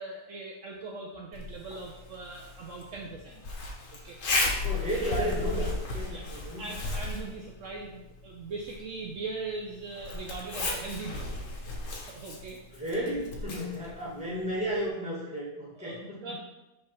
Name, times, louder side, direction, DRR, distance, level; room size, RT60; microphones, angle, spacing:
voice 1, 0.0-3.4 4.0-4.2 6.1-6.2 6.6-11.3 12.1-12.6 15.8-16.3, right 3 dB, 70° right, -1 dB, 0.7 m, -40 dB
Zipper (clothing), 1.3-14.9, left 2 dB, 50° left, 1.3 m, -36 dB
voice 2, 4.6-6.6 12.7-16.3, equal, 5° right, -6 dB, 2.1 m, -33 dB
5.5 x 3.4 x 5.7 m, 0.99 s
omnidirectional pair, 2.1 m